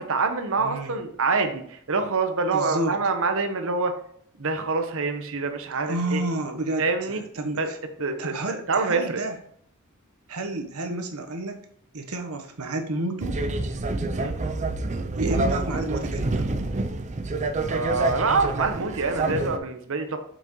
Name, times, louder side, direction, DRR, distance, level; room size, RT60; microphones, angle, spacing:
voice 1, 0.0-3.9 4.4-6.2 6.8-7.2 7.6-7.7 8.0-9.2 14.2-14.3 17.7-20.2, right 4 dB, 65° right, 6 dB, 1.0 m, -26 dB
voice 2, 0.6-1.0 2.5-3.0 5.9-7.8 8.2-9.4 10.3-11.6 11.9-13.4 15.2-16.5, right 1 dB, 90° right, 5 dB, 1.1 m, -30 dB
sound 1, 13.2-19.6, right 2 dB, 35° right, 0.5 m, -27 dB
7.0 x 6.1 x 3.1 m, 0.65 s
head